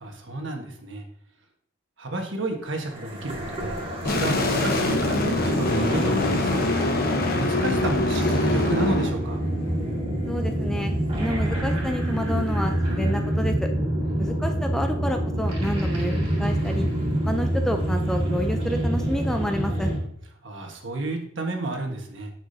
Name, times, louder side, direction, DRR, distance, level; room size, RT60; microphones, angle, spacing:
voice 1, 0.0-1.0 2.0-3.7 4.0-6.6 7.4-9.4 14.0-14.4 20.4-22.3, right 2 dB, 65° right, 3 dB, 1.4 m, -31 dB
sound 1, 2.8-20.0, right 1 dB, 30° right, 2.2 m, -27 dB
sound 2, 4.0-9.1, left 2 dB, 45° left, 1.0 m, -24 dB
voice 2, 10.3-10.9 11.2-13.7 14.2-16.9 17.2-19.9, equal, 5° left, 4 dB, 0.4 m, -29 dB
9.8 x 6.0 x 2.7 m, 0.66 s
head